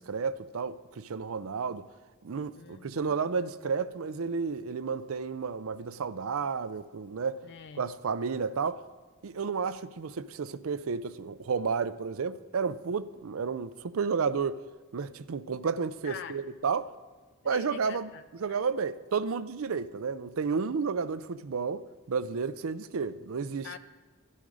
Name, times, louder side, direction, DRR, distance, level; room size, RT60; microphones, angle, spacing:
voice 1, 0.0-1.8 2.2-7.4 7.8-8.8 9.2-14.6 14.9-16.9 17.4-18.1 18.4-23.7, right 5 dB, 70° right, 0.5 m, -32 dB
voice 2, 2.6-3.2 7.4-7.8 16.0-16.3 17.4-18.6 23.6-23.8, left 7 dB, 55° left, 0.3 m, -44 dB
12.5 x 12.0 x 4.9 m
head